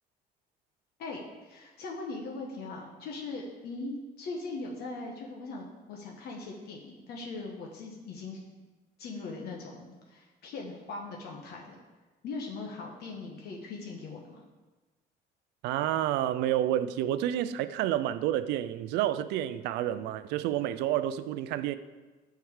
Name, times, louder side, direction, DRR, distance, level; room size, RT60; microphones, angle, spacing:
voice 1, 1.0-8.6 9.0-11.8 12.2-14.4, left 3 dB, 70° left, 1.3 m, -40 dB
voice 2, 15.6-21.8, right 12 dB, 90° right, 0.4 m, -29 dB
8.0 x 4.6 x 6.4 m
cardioid pair, 110°, 17 cm